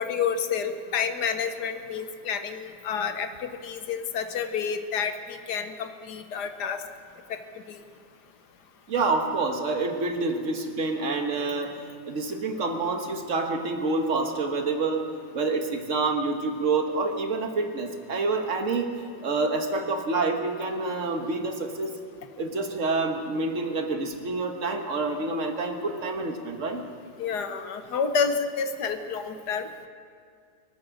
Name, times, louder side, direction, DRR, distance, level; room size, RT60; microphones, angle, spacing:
voice 1, 0.0-6.8 27.2-29.7, left 6 dB, 70° left, 8 dB, 1.4 m, -29 dB
voice 2, 8.9-18.9 19.2-21.9 22.4-26.8, right 3 dB, 45° right, 5 dB, 1.6 m, -27 dB
24.5 x 8.9 x 6.4 m, 2.3 s
omnidirectional pair, 1.9 m